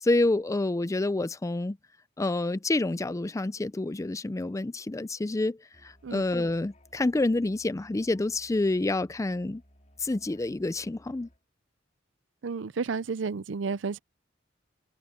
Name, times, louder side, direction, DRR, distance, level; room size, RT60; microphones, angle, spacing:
voice 1, 0.0-1.8 2.2-5.6 6.1-9.6 10.0-11.3, left 2 dB, 15° left, 0.4 m, -28 dB
Musical instrument, 5.7-11.4, equal, 40° left, 5.1 m, -59 dB
voice 2, 12.4-14.0, right 5 dB, 70° right, 0.5 m, -31 dB
open air
head